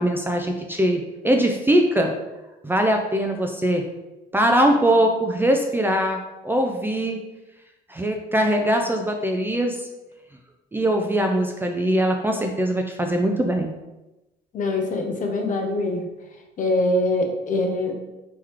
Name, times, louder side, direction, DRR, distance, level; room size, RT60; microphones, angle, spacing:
voice 1, 0.0-2.1 2.6-3.8 4.3-7.2 7.9-9.9 10.7-13.7, right 1 dB, 10° right, 3 dB, 0.5 m, -21 dB
voice 2, 14.5-16.1 16.6-17.9, left 2 dB, 45° left, 3 dB, 0.9 m, -23 dB
3.8 x 3.1 x 4.5 m, 1.0 s
cardioid pair, 105°, 18 cm